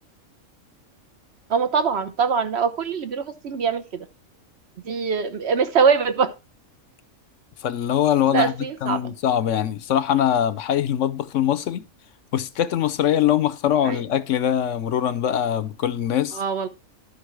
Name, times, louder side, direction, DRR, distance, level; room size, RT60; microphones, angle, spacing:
voice 1, 1.5-4.1 4.8-6.3 8.3-9.1 13.8-14.0 16.3-16.7, right 6 dB, 50° right, 1.2 m, -23 dB
voice 2, 7.6-8.5 8.8-11.8 12.3-16.4, left 10 dB, 65° left, 1.0 m, -22 dB
12.0 x 5.5 x 4.6 m
omnidirectional pair, 1.5 m